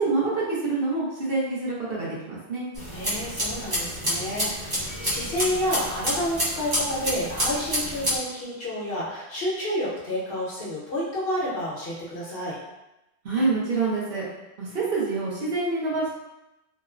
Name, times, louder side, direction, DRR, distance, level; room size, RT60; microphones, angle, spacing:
voice 1, 0.0-2.7 13.2-14.2 14.6-16.1, right 3 dB, 60° right, -6 dB, 0.9 m, -26 dB
sound 1, 2.8-8.2, equal, 25° right, 0.6 m, -28 dB
voice 2, 2.9-12.6, left 1 dB, 60° left, -7 dB, 1.0 m, -30 dB
sound 2, 4.9-7.7, left 2 dB, 40° left, 0.7 m, -50 dB
3.0 x 2.0 x 2.4 m, 0.94 s
omnidirectional pair, 1.1 m